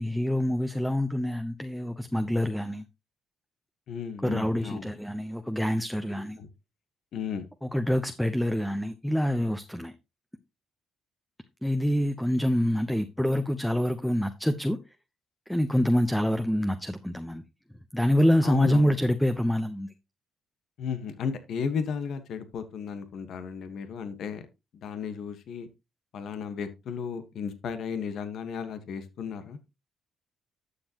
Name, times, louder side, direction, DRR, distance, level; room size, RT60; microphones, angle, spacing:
voice 1, 0.0-2.8 4.2-6.4 7.6-9.9 11.6-14.8 15.5-17.4 17.9-19.9, equal, 5° left, 0.9 m, -26 dB
voice 2, 3.9-4.9 6.4-6.5 7.1-7.4 18.4-18.9 20.8-24.5 24.7-25.7 26.1-29.6, left 6 dB, 70° left, 1.5 m, -34 dB
11.5 x 7.0 x 3.0 m
cardioid pair, 80°, 0 cm